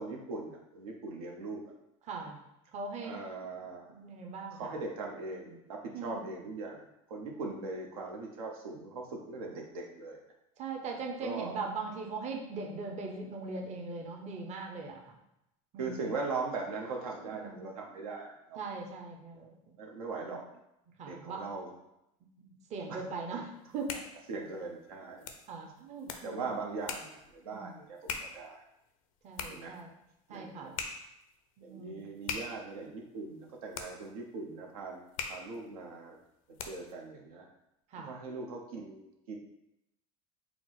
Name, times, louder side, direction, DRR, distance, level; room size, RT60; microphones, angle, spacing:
voice 1, 0.0-1.6 3.0-3.9 4.5-10.2 11.2-11.6 15.8-18.6 19.4-20.4 21.1-21.7 22.9-23.0 23.3-23.4 24.3-25.2 26.2-28.6 29.5-29.8 30.3-30.8 31.6-35.0 35.3-36.2 36.6-37.5 38.0-39.4, right 3 dB, 85° right, 1 dB, 0.7 m, -40 dB
voice 2, 2.1-2.4 2.7-3.1 3.9-4.7 5.9-6.2 7.4-7.6 10.6-15.0 15.7-16.1 17.3-17.6 18.6-19.7 20.2-20.3 21.0-21.4 22.4-24.0 25.5-26.4 27.5-27.8 29.2-29.9 30.3-30.8 31.6-32.1 37.9-38.2, right 4 dB, 40° right, 2 dB, 0.7 m, -40 dB
sound 1, 23.5-37.0, left 6 dB, 75° left, 0.5 m, -44 dB
4.5 x 2.0 x 3.9 m, 0.85 s
hypercardioid pair, 95°, 18 cm